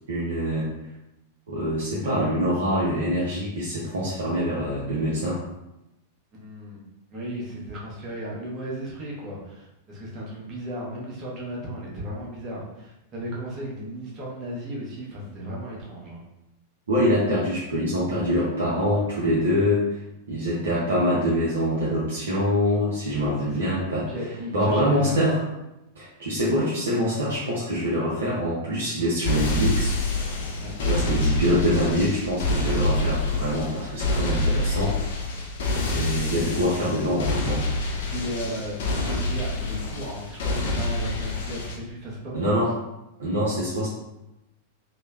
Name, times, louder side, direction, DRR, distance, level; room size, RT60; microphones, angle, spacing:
voice 1, 0.1-0.7 1.5-5.4 16.9-20.0 20.3-24.1 24.5-25.4 26.0-29.9 30.8-35.0 35.9-37.6 42.3-42.7 43.2-43.9, equal, 65° right, -8 dB, 0.6 m, -24 dB
voice 2, 6.3-6.8 7.1-16.2 23.2-23.8 24.1-25.1 26.4-26.5 30.6-30.7 38.1-42.7, equal, 30° right, -4 dB, 0.9 m, -35 dB
sound 1, 29.2-41.8, left 2 dB, 55° left, 0.4 m, -26 dB
3.0 x 2.0 x 2.3 m, 0.92 s
figure-of-eight pair, 95°, 0 cm